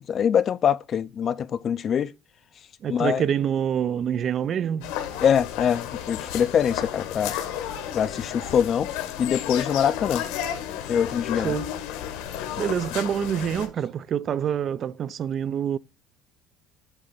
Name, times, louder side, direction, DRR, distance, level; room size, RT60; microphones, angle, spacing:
voice 1, 0.1-2.1 2.9-3.2 5.2-7.3 7.9-8.9 9.2-10.2 10.9-11.5, left 8 dB, 35° left, 0.4 m, -23 dB
voice 2, 2.8-4.9 11.4-11.7 12.6-15.8, right 9 dB, 35° right, 0.3 m, -26 dB
sound 1, 4.8-13.7, left 10 dB, 85° left, 1.8 m, -32 dB
8.8 x 3.3 x 5.4 m
cardioid pair, 145°, 0 cm